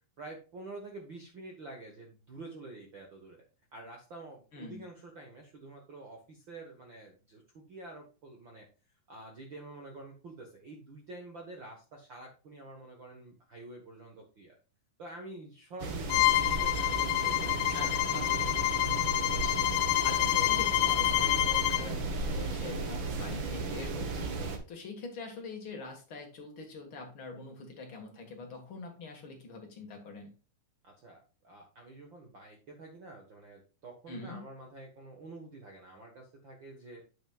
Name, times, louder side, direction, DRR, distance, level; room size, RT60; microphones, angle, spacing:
voice 1, 0.2-3.4 3.7-8.7 9.1-14.5 15.0-17.6 18.1-18.7 30.8-37.0, right 2 dB, 65° right, 1 dB, 1.2 m, -48 dB
voice 2, 4.5-4.8 17.7-18.1 20.0-30.3 34.1-34.4, left 3 dB, 45° left, 3 dB, 1.8 m, -44 dB
sound 1, 15.8-24.6, right 3 dB, 85° right, 1.0 m, -35 dB
Bowed string instrument, 16.1-21.9, left 17 dB, 80° left, 2.2 m, -28 dB
8.4 x 7.8 x 2.4 m, 0.35 s
omnidirectional pair, 4.2 m